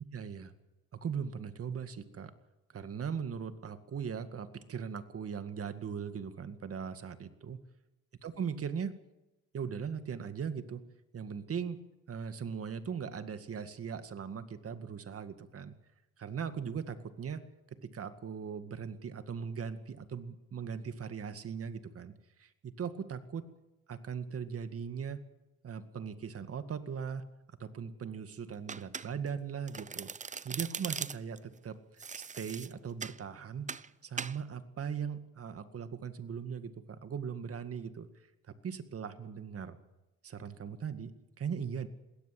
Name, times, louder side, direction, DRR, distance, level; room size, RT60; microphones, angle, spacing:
voice 1, 0.1-0.5 1.0-2.3 2.7-7.6 8.2-8.9 9.5-10.9 11.1-11.8 12.1-15.7 16.2-17.4 17.8-22.1 22.4-23.4 23.9-25.2 25.6-30.1 30.4-33.7 34.0-38.1 38.5-39.8 40.2-41.9, right 7 dB, 50° right, 10 dB, 2.0 m, -39 dB
Domestic sounds home sounds, 28.7-29.4 29.7-31.4 32.0-33.2 33.7-33.9 34.2-34.4, right 5 dB, 25° right, 0.7 m, -40 dB
21.0 x 17.0 x 7.8 m, 0.98 s
cardioid pair, 90°, 30 cm